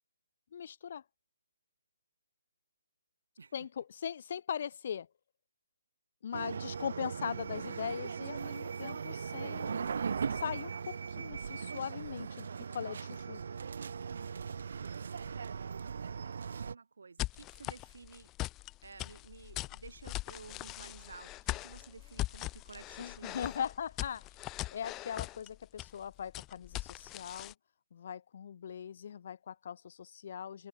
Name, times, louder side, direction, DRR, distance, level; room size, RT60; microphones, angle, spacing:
voice 1, 0.5-1.0 3.5-5.1 6.2-10.0 10.3-13.4 23.0-24.3 24.7-27.5 27.9-30.7, left 8 dB, 45° left, 2.0 m, -40 dB
sound 1, 6.3-16.8, right 6 dB, 60° right, 1.3 m, -39 dB
voice 2, 16.0-18.3 18.8-23.7, right 4 dB, 75° right, 2.8 m, -53 dB
sound 2, 17.2-27.5, left 18 dB, 15° left, 0.9 m, -41 dB
hypercardioid pair, 160°, 0 cm